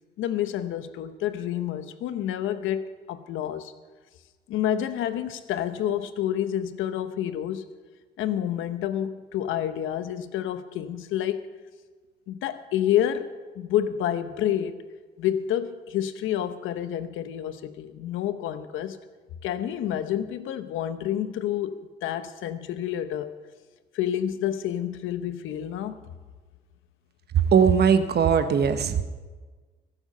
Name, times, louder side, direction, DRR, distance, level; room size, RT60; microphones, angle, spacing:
voice 1, 0.2-3.7 4.5-7.7 8.2-11.5 12.3-13.3 13.6-14.8 15.2-19.0 19.4-23.3 23.9-26.0, left 10 dB, 90° left, 0.9 m, -29 dB
voice 2, 27.3-29.0, right 7 dB, 55° right, 1.1 m, -20 dB
23.0 x 8.0 x 5.4 m
cardioid pair, 90°, 20 cm